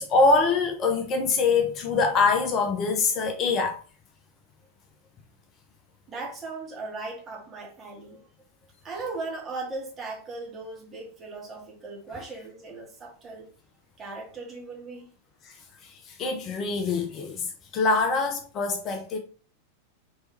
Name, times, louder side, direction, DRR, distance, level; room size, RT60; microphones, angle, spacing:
voice 1, 0.0-3.8 15.5-15.6 15.8-17.5 17.7-19.2, left 4 dB, 30° left, 0.7 m, -24 dB
voice 2, 6.1-8.2 8.8-13.5 14.0-15.1, right 3 dB, 25° right, 1.7 m, -38 dB
4.4 x 3.2 x 3.3 m
figure-of-eight pair, 90°, 0 cm